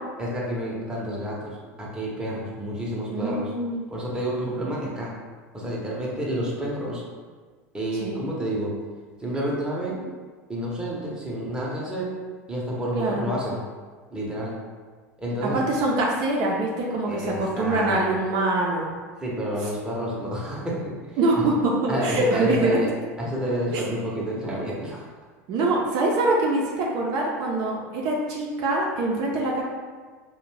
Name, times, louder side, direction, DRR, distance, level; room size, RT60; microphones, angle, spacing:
voice 1, 0.2-3.5 3.9-5.1 5.5-7.0 7.7-8.7 9.2-10.1 10.5-12.1 12.5-13.6 14.1-14.6 15.2-15.6 17.1-18.2 19.2-20.8 21.0-21.5 21.9-22.9 23.2-25.0, equal, 10° right, -5 dB, 0.7 m, -29 dB
voice 2, 3.1-3.8 8.0-8.2 12.9-13.2 15.4-18.9 21.2-22.8 23.7-23.8 25.5-29.6, right 2 dB, 55° right, -2 dB, 0.5 m, -24 dB
2.5 x 2.2 x 3.1 m, 1.5 s
hypercardioid pair, 90°, 8 cm